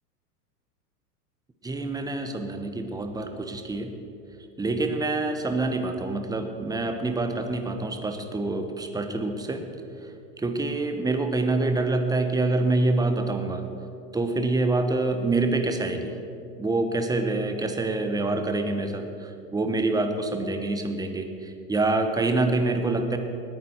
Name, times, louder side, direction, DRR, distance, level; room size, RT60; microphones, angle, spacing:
voice 1, 1.6-4.0 4.6-9.6 10.4-13.6 14.1-16.1 16.6-23.2, right 2 dB, 10° right, 7 dB, 1.1 m, -26 dB
19.5 x 9.3 x 4.7 m, 2.6 s
hypercardioid pair, 100°, 48 cm